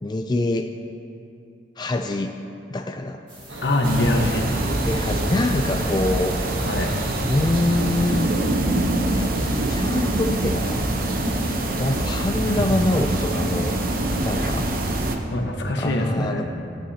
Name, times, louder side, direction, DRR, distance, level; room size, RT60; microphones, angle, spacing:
voice 1, 0.0-0.7 1.8-2.4 2.7-3.2 4.6-6.4 7.2-8.3 9.2-10.8 11.3-13.8 14.2-14.7 15.8-16.4, left 2 dB, 25° left, 5 dB, 0.4 m, -25 dB
sound 1, 3.3-12.8, right 1 dB, 30° right, 2.7 m, -45 dB
sound 2, 3.5-8.6, right 1 dB, 80° right, 1.1 m, -37 dB
voice 2, 3.6-4.4 6.6-7.0 12.4-13.0 15.3-16.4, left 1 dB, 75° left, 2 dB, 1.2 m, -24 dB
sound 3, 3.8-15.2, right 1 dB, 55° right, 0.9 m, -24 dB
17.5 x 9.3 x 2.8 m, 2.6 s
head